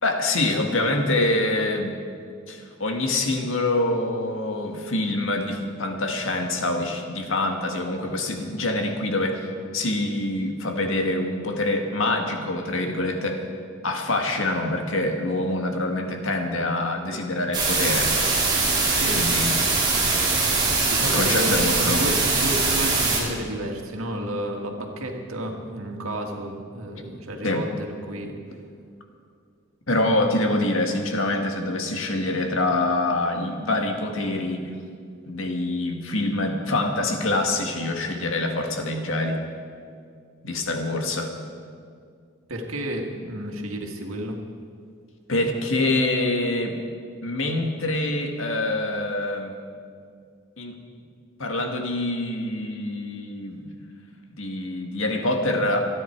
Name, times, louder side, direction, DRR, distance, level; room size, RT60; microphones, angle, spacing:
voice 1, 0.0-2.0 2.5-9.5 9.7-13.4 13.8-18.1 19.2-19.6 21.1-22.1 27.4-27.6 29.9-34.7 35.3-39.4 40.4-41.3 45.3-46.8 47.2-49.5 50.6-50.8 51.4-53.7 54.4-55.8, left 2 dB, 70° left, 3 dB, 1.8 m, -25 dB
sound 1, 17.5-23.2, right 3 dB, 20° right, 3.6 m, -22 dB
voice 2, 18.9-19.3 20.9-27.7 28.1-28.4 42.5-44.4, right 1 dB, 90° right, 2 dB, 2.0 m, -31 dB
27.0 x 9.9 x 4.6 m, 2.3 s
head